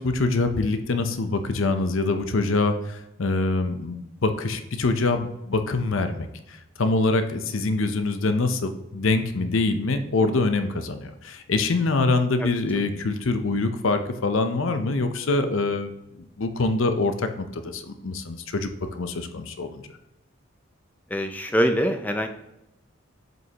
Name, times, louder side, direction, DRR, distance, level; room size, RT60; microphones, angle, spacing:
voice 1, 0.0-15.9 16.2-19.8, left 3 dB, 75° left, 8 dB, 0.7 m, -25 dB
voice 2, 21.1-22.3, equal, 10° left, 6 dB, 0.4 m, -23 dB
7.8 x 5.3 x 2.9 m, 0.90 s
head